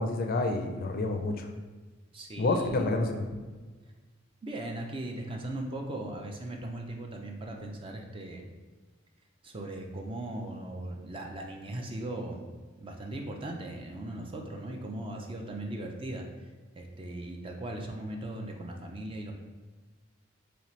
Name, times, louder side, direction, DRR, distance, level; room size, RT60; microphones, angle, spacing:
voice 1, 0.0-1.5 2.4-3.2, left 2 dB, 45° left, 4 dB, 0.4 m, -28 dB
voice 2, 2.1-2.9 4.4-8.4 9.4-12.4 12.8-16.3 16.8-19.3, right 1 dB, 25° right, 2 dB, 0.4 m, -38 dB
4.1 x 3.2 x 3.1 m, 1.4 s
head